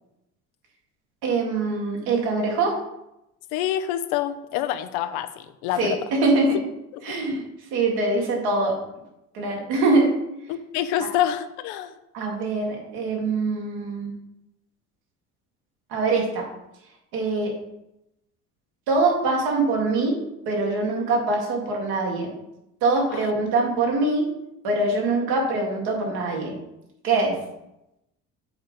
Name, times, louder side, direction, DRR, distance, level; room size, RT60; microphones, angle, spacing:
voice 1, 1.2-2.8 5.8-6.6 7.0-7.4 7.7-8.8 9.3-10.1 12.1-14.1 15.9-16.5 17.1-17.5 18.9-22.3 22.8-24.3 24.6-26.6 27.0-27.4, right 3 dB, 75° right, 0 dB, 2.2 m, -23 dB
voice 2, 3.5-6.0 6.9-7.1 10.5-11.9 23.1-23.3, left 11 dB, 75° left, 11 dB, 0.8 m, -27 dB
7.8 x 3.9 x 5.3 m, 0.87 s
hypercardioid pair, 70°, 39 cm